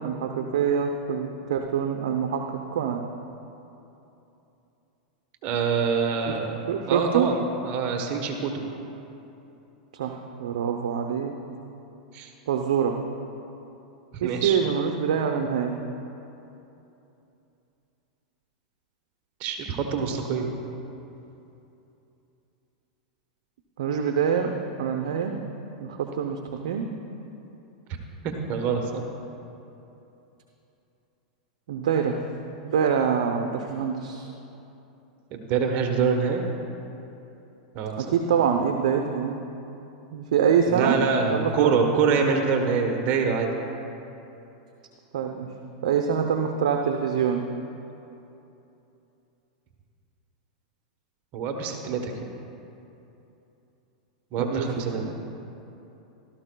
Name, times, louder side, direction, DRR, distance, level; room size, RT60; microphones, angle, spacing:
voice 1, 0.0-3.1 6.3-6.4 6.7-7.3 9.9-11.3 12.5-13.0 14.2-15.8 23.8-24.5 24.8-25.4 25.8-26.9 31.7-32.2 32.5-34.3 38.0-39.4 40.1-40.9 41.3-41.7 45.1-45.5 45.8-47.4 54.4-54.7 55.0-55.1, right 7 dB, 75° right, 3 dB, 0.7 m, -25 dB
voice 2, 5.4-6.6 6.9-8.6 12.1-12.3 14.1-14.6 19.4-20.5 28.2-29.0 35.3-36.4 37.7-38.1 40.7-43.5 45.3-45.5 51.3-52.3 54.3-55.1, right 5 dB, 45° right, 3 dB, 1.1 m, -25 dB
16.0 x 13.0 x 2.3 m, 2.9 s
hypercardioid pair, 115°, 4 cm